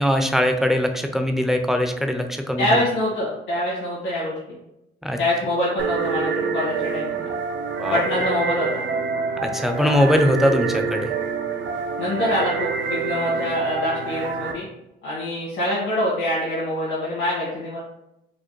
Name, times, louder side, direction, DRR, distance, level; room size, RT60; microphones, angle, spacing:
voice 1, 0.0-2.8 5.0-5.2 7.8-8.0 9.4-11.1, left 1 dB, ahead, 6 dB, 0.4 m, -21 dB
voice 2, 2.6-4.3 5.2-7.3 7.9-8.8 12.0-14.6 15.0-17.8, left 1 dB, 90° left, -9 dB, 1.5 m, -24 dB
sound 1, 5.8-14.5, right 5 dB, 65° right, 0.6 m, -26 dB
4.9 x 2.1 x 3.0 m, 0.87 s
cardioid pair, 90°, 20 cm